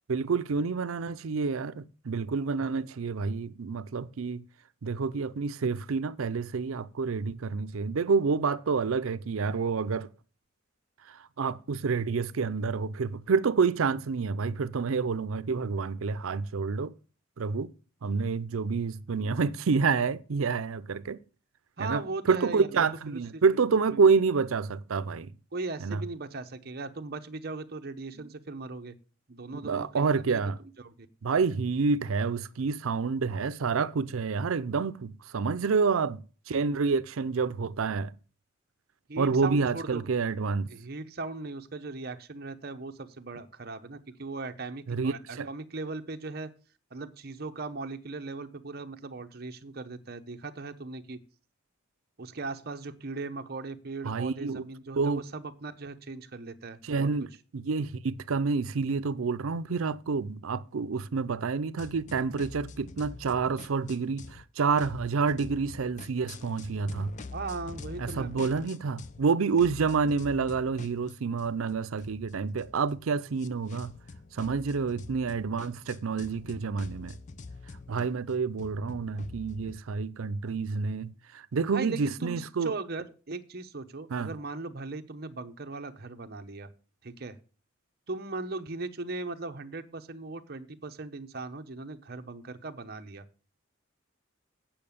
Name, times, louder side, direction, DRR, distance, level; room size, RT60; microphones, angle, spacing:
voice 1, 0.1-4.4 4.8-10.1 11.1-16.9 17.4-17.7 18.0-21.2 21.8-25.3 25.8-26.0 28.2-28.3 29.6-30.6 31.2-38.1 39.2-40.7 44.9-45.5 54.0-54.6 55.0-55.2 56.8-67.1 68.0-73.9 74.3-77.2 77.9-82.7 84.1-84.3, right 5 dB, 90° right, 0.5 m, -28 dB
voice 2, 21.8-22.9 23.1-23.4 23.9-24.0 25.5-29.0 29.3-30.4 30.8-31.1 39.1-40.0 40.7-46.5 46.9-51.2 52.2-57.1 67.3-68.6 81.7-86.7 87.0-87.4 88.1-93.2, right 3 dB, 50° right, 0.8 m, -38 dB
sound 1, 61.8-64.4 64.8-69.3 69.6-79.8, left 3 dB, 35° left, 0.5 m, -46 dB
8.7 x 5.8 x 7.0 m
head